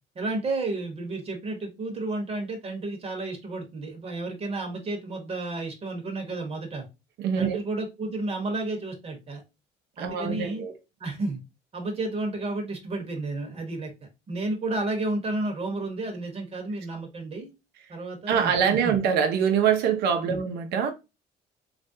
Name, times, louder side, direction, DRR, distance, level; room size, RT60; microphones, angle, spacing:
voice 1, 0.1-6.9 7.4-9.4 10.0-10.6 11.0-11.4 11.7-13.9 14.3-17.5 17.9-18.9 20.2-20.4, right 2 dB, 35° right, 1.0 m, -32 dB
voice 2, 7.2-7.6 10.0-10.8 18.3-20.9, right 7 dB, 80° right, 0.7 m, -24 dB
3.3 x 2.5 x 2.6 m
cardioid pair, 110°, 17 cm